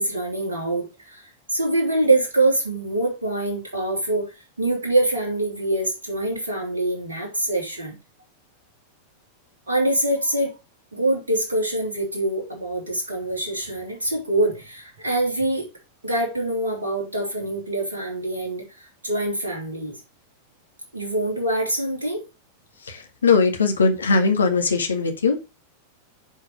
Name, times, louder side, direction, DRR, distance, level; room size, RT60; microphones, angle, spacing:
voice 1, 0.0-8.0 9.7-10.5 10.9-15.7 16.0-20.0 20.9-22.2, right 1 dB, 75° right, 3.1 m, -24 dB
voice 2, 22.9-25.4, left 4 dB, 70° left, 1.8 m, -20 dB
9.9 x 4.9 x 5.0 m
figure-of-eight pair, 90°, 0 cm